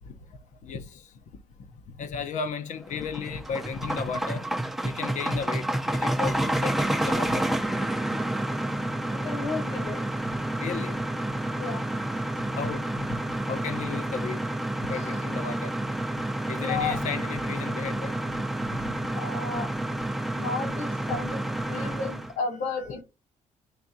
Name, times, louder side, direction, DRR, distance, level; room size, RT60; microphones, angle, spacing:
voice 1, 0.6-1.0 2.0-4.4 4.8-7.4 9.8-9.9 10.3-11.0 12.6-13.1 13.5-14.4 14.9-15.7 16.5-18.2 18.7-18.9 21.6-22.0 22.6-22.9, left 6 dB, 65° left, 0.9 m, -35 dB
sound 1, 2.9-22.3, right 1 dB, ahead, 0.6 m, -29 dB
voice 2, 9.1-10.0 11.6-11.8 14.9-15.2 16.6-17.0 19.1-19.7 20.3-21.4 21.7-23.0, left 4 dB, 90° left, 3.2 m, -33 dB
10.5 x 3.5 x 2.7 m
cardioid pair, 125°, 13 cm